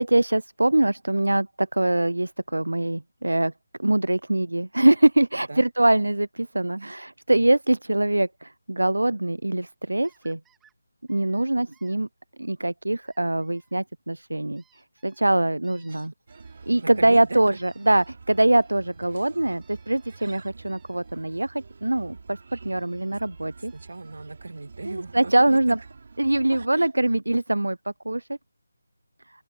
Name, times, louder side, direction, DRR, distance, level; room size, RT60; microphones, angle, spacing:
voice 1, 0.0-3.5 3.8-10.4 11.1-12.1 12.4-16.1 16.7-23.7 24.8-25.8 26.2-27.8 28.1-28.3, right 1 dB, 90° right, 0.4 m, -23 dB
sound 1, 10.0-10.7 11.1-12.0 13.1-13.7 14.6-17.2 17.5-21.3 22.8-23.3 23.6-24.3 26.2-26.3 26.7-26.8 27.1-27.2, right 9 dB, 5° right, 2.1 m, -65 dB
sound 2, 16.3-26.7, right 4 dB, 55° right, 6.0 m, -47 dB
voice 2, 16.8-17.4 23.6-25.8 26.7-26.9, right 3 dB, 70° right, 2.0 m, -38 dB
open air
figure-of-eight pair, 160°, 0 cm